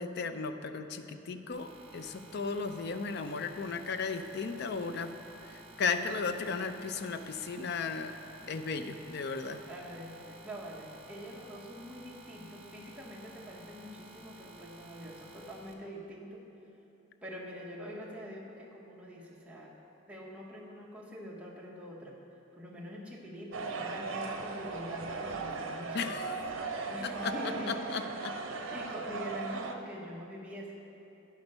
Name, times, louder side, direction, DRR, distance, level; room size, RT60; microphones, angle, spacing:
voice 1, 0.0-5.1 5.4-8.1 8.5-9.6 25.9-26.4 27.0-27.3 27.7-28.3, left 5 dB, 55° left, 9 dB, 0.4 m, -35 dB
sound 1, 1.5-15.7, right 2 dB, 30° right, 1.0 m, -53 dB
voice 2, 9.7-16.4 17.2-19.7 20.1-22.2 22.5-26.2 26.5-28.0 28.7-30.8, equal, 5° right, -4 dB, 1.0 m, -44 dB
sound 2, 23.5-29.8, right 4 dB, 75° right, 0.6 m, -37 dB
9.7 x 6.1 x 5.3 m, 2.9 s
head